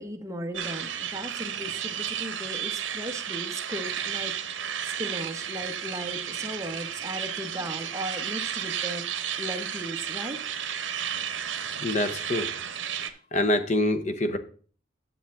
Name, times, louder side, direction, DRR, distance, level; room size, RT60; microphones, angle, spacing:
voice 1, 0.0-9.0 9.4-10.4, right 1 dB, 15° right, 5 dB, 1.0 m, -37 dB
sound 1, 0.5-13.1, right 9 dB, 70° right, 1.0 m, -33 dB
voice 2, 11.5-12.5 13.3-14.4, left 1 dB, 40° left, 9 dB, 0.9 m, -26 dB
10.0 x 7.3 x 3.7 m, 0.42 s
head